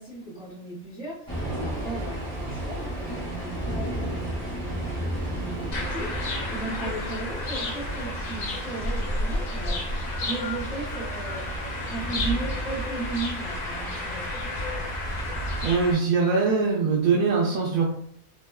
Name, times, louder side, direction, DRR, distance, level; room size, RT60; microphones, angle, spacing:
voice 1, 0.0-14.5, right 3 dB, 10° right, -9 dB, 0.6 m, -36 dB
sound 1, 1.3-15.7, right 1 dB, 10° left, 0.9 m, -33 dB
sound 2, 5.7-15.9, left 2 dB, 70° left, 1.0 m, -32 dB
voice 2, 15.6-17.8, right 4 dB, 85° right, -3 dB, 1.1 m, -22 dB
2.8 x 2.1 x 2.2 m, 0.66 s
omnidirectional pair, 1.5 m